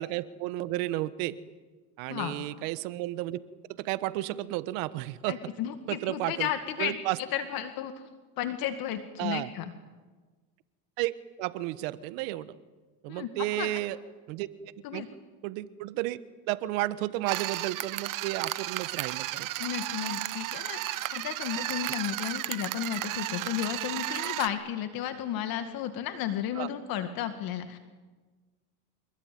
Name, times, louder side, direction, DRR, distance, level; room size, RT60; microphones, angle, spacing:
voice 1, 0.0-1.4 2.0-3.4 3.7-5.4 5.9-6.5 6.8-7.2 9.2-9.5 11.0-12.6 13.0-14.0 14.3-14.5 14.9-15.1 15.4-16.2 16.5-19.5 26.6-26.7, right 16 dB, 80° right, 15 dB, 1.4 m, -32 dB
voice 2, 5.3-9.7 13.1-13.7 14.8-15.1 19.6-27.8, left 10 dB, 60° left, 8 dB, 2.1 m, -33 dB
sound 1, 17.3-24.5, right 15 dB, 50° right, 1.2 m, -34 dB
26.0 x 21.5 x 9.3 m, 1.3 s
supercardioid pair, 125°, 41 cm